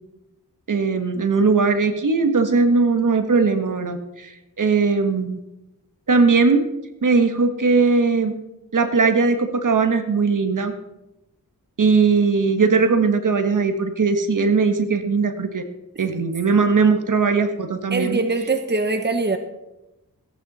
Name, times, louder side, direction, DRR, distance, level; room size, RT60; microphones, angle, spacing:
voice 1, 0.7-5.4 6.1-6.6 7.0-8.4 8.7-10.7 11.8-15.6 16.0-18.2, right 4 dB, 60° right, 7 dB, 1.7 m, -19 dB
voice 2, 17.9-19.4, right 3 dB, 30° right, 7 dB, 1.4 m, -22 dB
17.0 x 10.5 x 4.3 m, 0.94 s
cardioid pair, 55°, 36 cm